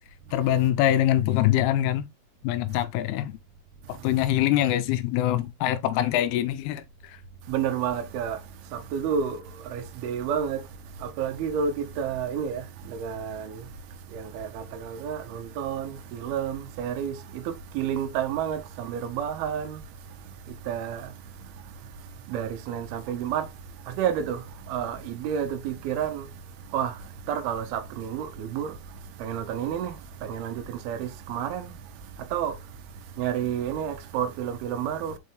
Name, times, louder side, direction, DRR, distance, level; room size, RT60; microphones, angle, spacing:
voice 1, 0.3-2.1 2.4-3.4 3.9-6.8, left 12 dB, 85° left, 2.6 m, -24 dB
voice 2, 7.5-8.4 8.7-10.7 11.0-13.7 14.1-19.8 20.7-21.1 22.3-23.5 23.9-26.3 26.7-28.8 29.2-31.7 32.2-32.6 33.2-35.2, right 8 dB, 80° right, 2.7 m, -30 dB
5.5 x 5.3 x 3.3 m
omnidirectional pair, 4.5 m